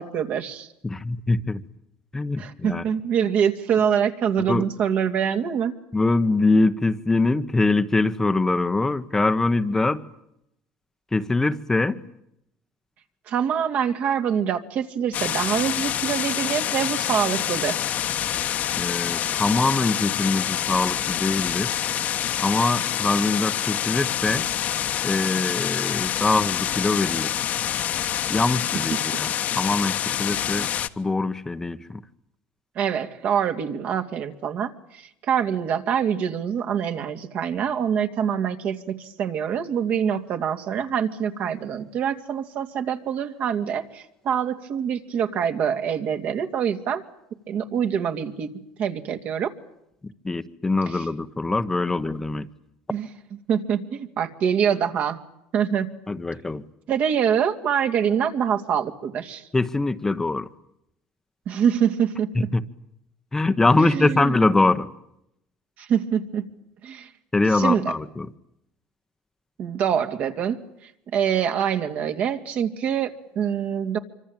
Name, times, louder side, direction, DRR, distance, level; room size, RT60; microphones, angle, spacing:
voice 1, 0.0-0.7 2.4-5.8 13.3-17.9 28.9-29.0 30.3-30.6 32.7-47.0 47.5-48.5 48.8-49.5 52.9-53.1 53.5-55.2 55.5-55.9 56.9-59.5 61.5-62.5 63.8-64.4 65.8-66.5 66.8-67.1 67.5-67.9 69.6-74.0, right 8 dB, 50° right, 6 dB, 2.7 m, -25 dB
voice 2, 0.8-1.6 2.1-2.8 4.5-4.7 5.9-10.0 11.1-12.0 18.8-21.7 22.4-24.4 25.0-27.3 28.3-30.7 31.0-32.0 50.2-52.5 56.1-56.6 59.5-60.5 62.3-62.6 63.3-64.9 67.3-68.3, left 3 dB, 15° left, 9 dB, 1.2 m, -23 dB
sound 1, 15.1-30.9, left 10 dB, 50° left, 1.4 m, -26 dB
26.0 x 25.0 x 9.0 m, 0.80 s
cardioid pair, 115°, 3 cm